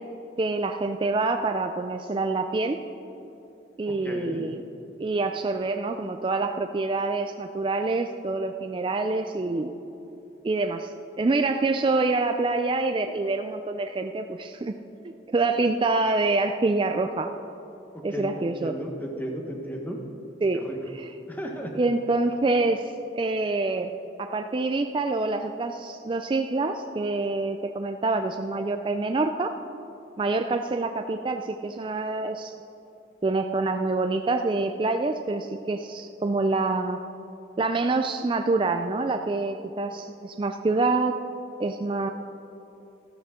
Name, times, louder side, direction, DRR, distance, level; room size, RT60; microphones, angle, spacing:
voice 1, 0.4-2.8 3.8-4.6 5.0-9.7 10.4-14.8 15.3-17.3 18.0-18.8 20.4-20.6 21.0-21.1 21.7-23.9 24.2-29.5 30.2-32.5 33.2-37.0 37.6-41.2 41.6-42.1, right 3 dB, 25° right, 6 dB, 0.3 m, -26 dB
voice 2, 3.9-4.5 18.1-20.0 20.5-20.8 21.3-21.8, equal, 10° left, 1 dB, 1.1 m, -34 dB
13.0 x 12.5 x 3.7 m, 2.9 s
head